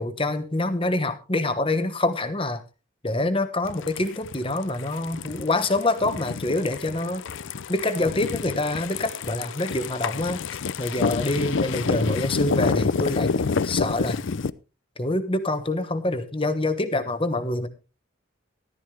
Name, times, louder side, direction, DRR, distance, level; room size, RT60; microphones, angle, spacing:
voice 1, 0.0-2.6 3.0-7.2 7.7-10.4 10.8-13.3 13.6-14.2 15.0-17.7, left 2 dB, 25° left, 10 dB, 1.1 m, -26 dB
sound 1, 3.7-14.5, left 4 dB, 60° left, 0.5 m, -28 dB
13.5 x 12.5 x 3.3 m, 0.31 s
head